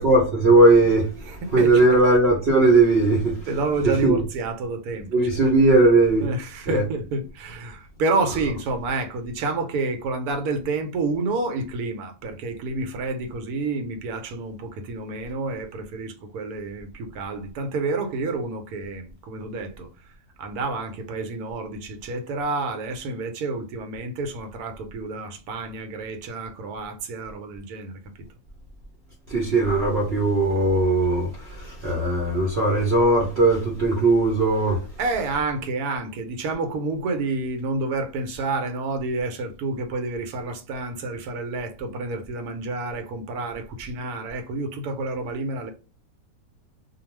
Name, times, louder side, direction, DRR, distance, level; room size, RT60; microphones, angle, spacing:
voice 1, 0.0-1.1 1.5-3.4 4.0-4.2 5.1-6.2 6.7-6.8 29.3-34.8, right 2 dB, 55° right, 0.8 m, -18 dB
voice 2, 1.2-2.0 3.5-5.5 6.2-19.9 20.4-28.0 35.0-45.7, right 3 dB, 75° right, 1.1 m, -29 dB
2.4 x 2.3 x 3.1 m
omnidirectional pair, 1.6 m